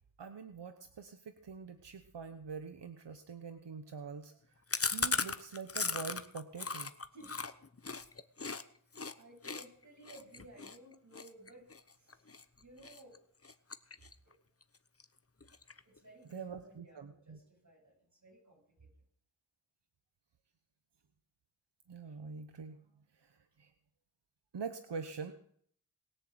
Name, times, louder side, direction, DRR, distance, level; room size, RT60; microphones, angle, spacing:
voice 1, 0.2-4.4 4.9-6.9 16.3-17.4 21.9-22.8 23.2-23.7 24.5-25.3, right 5 dB, 90° right, 8 dB, 1.0 m, -45 dB
Chewing mastication, 4.7-8.6 8.9-9.1 9.4-12.4 12.8-13.2 13.4-14.3 14.6-14.7 15.0-15.1 15.4-16.0, left 4 dB, 35° left, 0.9 m, -37 dB
voice 2, 7.1-7.5 8.9-12.3 12.5-13.2 15.8-18.9, right 1 dB, 45° right, 0 dB, 7.9 m, -57 dB
20.0 x 7.6 x 7.9 m, 0.62 s
wide cardioid pair, 55°, 41 cm